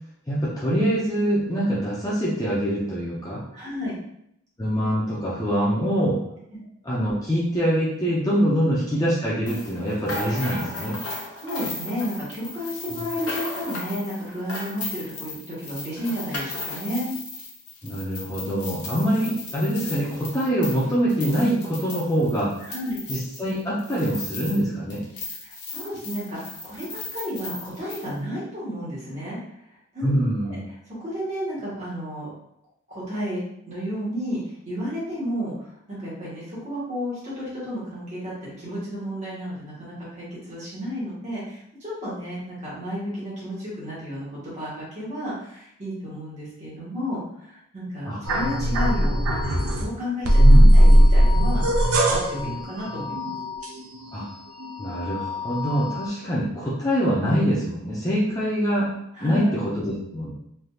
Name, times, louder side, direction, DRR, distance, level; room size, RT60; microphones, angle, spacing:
voice 1, 0.3-3.4 4.6-6.2 6.8-11.0 12.9-13.0 17.8-22.6 23.1-25.0 30.0-30.6 48.1-48.2 50.4-50.9 54.1-54.3 54.8-58.9 59.2-60.3, equal, 15° left, -8 dB, 0.5 m, -24 dB
voice 2, 3.5-3.9 8.5-8.6 11.3-17.1 22.7-23.0 25.4-29.4 29.9-30.1 30.4-30.6 30.9-32.3 32.9-33.4 33.7-50.4 50.7-53.3 59.1-59.5, equal, 30° right, -8 dB, 1.3 m, -32 dB
sound 1, 9.5-24.6 24.9-28.1, left 2 dB, 90° left, 0.7 m, -36 dB
sound 2, 48.2-49.9 50.2-54.2 54.6-56.1, equal, 85° right, 0.5 m, -18 dB
3.3 x 2.8 x 2.3 m, 0.75 s
head